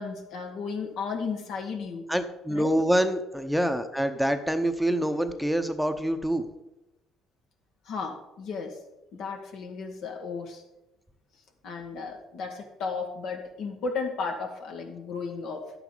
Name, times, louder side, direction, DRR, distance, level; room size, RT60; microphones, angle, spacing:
voice 1, 0.0-2.1 2.5-2.8 7.9-8.8 9.1-10.6 11.6-15.7, left 4 dB, 70° left, 3 dB, 1.7 m, -34 dB
voice 2, 2.1-6.5, right 1 dB, ahead, 8 dB, 0.8 m, -26 dB
11.0 x 9.1 x 4.0 m, 0.96 s
supercardioid pair, 80°, 0 cm